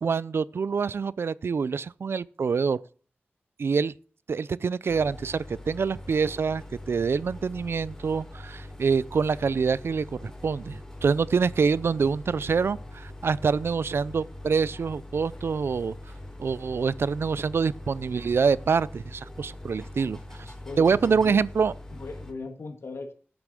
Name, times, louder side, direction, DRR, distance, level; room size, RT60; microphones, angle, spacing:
voice 1, 0.0-2.8 3.6-3.9 4.3-15.9 16.4-21.7, right 5 dB, 75° right, 0.4 m, -26 dB
sound 1, 4.9-22.3, left 1 dB, 15° left, 4.2 m, -42 dB
voice 2, 12.0-12.8 20.4-21.4 21.9-23.1, left 3 dB, 85° left, 1.8 m, -40 dB
11.0 x 7.0 x 6.8 m
wide cardioid pair, 90°, 4 cm